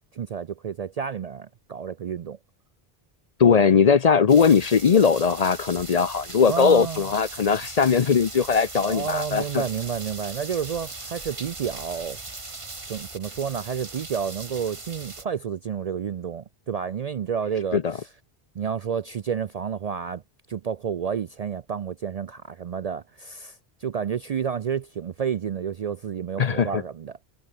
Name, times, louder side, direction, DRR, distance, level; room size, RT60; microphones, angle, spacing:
voice 1, 0.1-2.4 6.5-7.0 8.8-12.2 12.9-18.1 18.5-20.2 20.5-27.2, right 7 dB, 55° right, 0.4 m, -30 dB
voice 2, 3.4-9.6 17.7-17.9 26.4-26.8, left 6 dB, 45° left, 0.6 m, -19 dB
sound 1, 4.3-15.2, right 3 dB, 30° right, 1.5 m, -39 dB
omnidirectional pair, 1.0 m